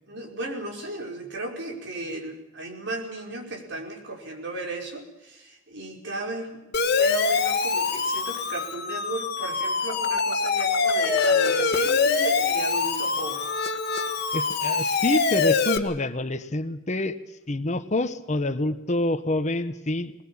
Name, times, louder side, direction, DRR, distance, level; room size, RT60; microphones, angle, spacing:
voice 1, 0.1-13.5, right 2 dB, 60° right, 1 dB, 5.1 m, -35 dB
Siren, 6.7-15.8, left 4 dB, 55° left, 1.7 m, -24 dB
voice 2, 14.3-17.2 17.5-20.2, left 1 dB, 35° left, 10 dB, 1.2 m, -27 dB
21.5 x 20.5 x 8.7 m, 0.99 s
head